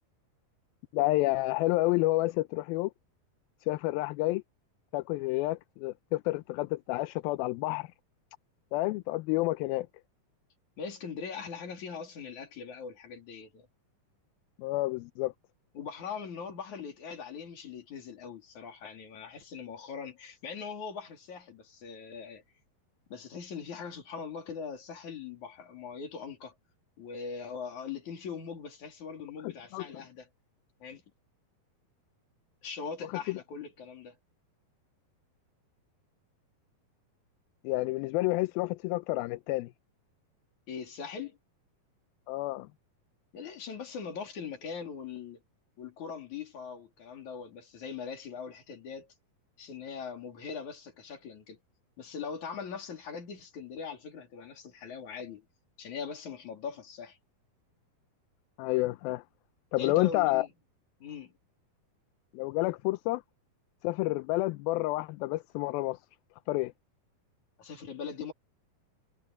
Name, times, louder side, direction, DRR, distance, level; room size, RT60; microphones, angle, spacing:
voice 1, 0.9-2.9 3.7-4.4 4.9-7.9 8.7-9.9 14.6-15.3 29.7-29.9 33.3-33.4 37.6-39.7 42.3-42.7 58.6-59.2 59.7-60.5 62.3-63.2 63.8-66.0 66.5-66.7, left 19 dB, 80° left, 2.4 m, -29 dB
voice 2, 10.8-13.7 15.7-22.4 23.1-26.5 27.0-30.3 30.8-31.0 32.6-34.2 40.7-41.4 43.3-45.4 45.8-49.1 49.6-51.6 52.0-55.5 55.8-57.2 59.8-60.5 61.0-61.3 67.6-68.3, left 6 dB, 50° left, 4.5 m, -41 dB
omnidirectional pair, 4.4 m